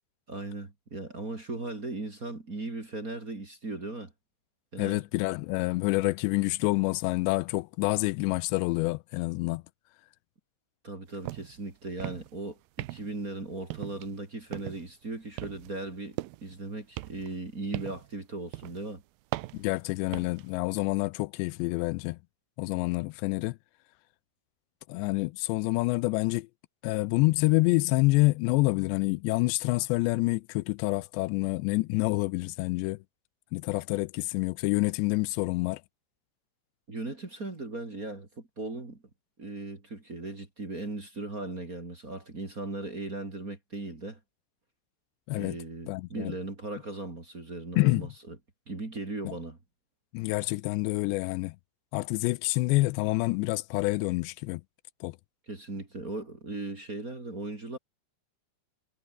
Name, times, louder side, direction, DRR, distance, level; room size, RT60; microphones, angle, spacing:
voice 1, 0.3-4.1 4.7-5.0 10.8-19.0 36.9-39.0 39.4-44.2 45.3-48.4 48.7-49.6 55.5-57.8, right 2 dB, 25° right, 2.8 m, -38 dB
voice 2, 4.8-9.6 19.5-22.2 22.6-23.6 24.9-26.5 26.8-33.0 33.5-35.8 45.3-45.6 45.9-46.3 47.8-48.1 49.3-49.4 50.1-51.6 51.9-54.6 55.0-55.2, left 22 dB, 85° left, 2.8 m, -27 dB
sound 1, 11.2-11.6 11.9-12.4 12.8-13.3 13.7-14.2 14.5-14.9 15.4-16.6 17.0-18.1 18.5-18.8 19.3-20.5, right 18 dB, 80° right, 2.1 m, -39 dB
omnidirectional pair, 5.0 m